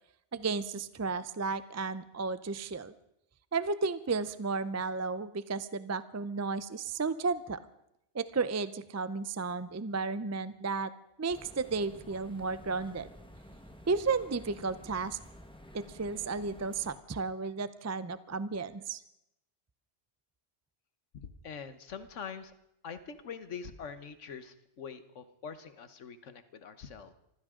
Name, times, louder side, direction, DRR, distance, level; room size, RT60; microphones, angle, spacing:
voice 1, 0.3-2.9 3.5-7.6 8.1-10.9 11.2-13.1 13.9-15.2 15.7-19.0, right 4 dB, 25° right, 14 dB, 0.4 m, -33 dB
sound 1, 11.3-17.0, equal, 5° left, 1.3 m, -52 dB
voice 2, 21.1-22.5 22.8-27.1, left 6 dB, 85° left, 11 dB, 1.4 m, -44 dB
25.0 x 15.5 x 3.8 m, 0.82 s
omnidirectional pair, 1.2 m